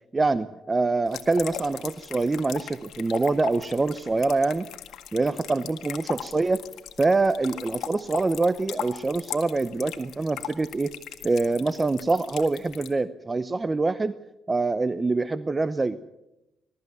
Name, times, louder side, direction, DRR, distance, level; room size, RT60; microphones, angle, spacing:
voice 1, 0.1-4.7 5.1-6.6 7.0-10.9 11.2-14.1 14.5-16.0, right 3 dB, 25° right, 14 dB, 0.7 m, -25 dB
sound 1, 1.1-12.9, left 10 dB, 75° left, 1.7 m, -39 dB
21.5 x 13.5 x 9.4 m, 0.96 s
cardioid pair, 90°, 0 cm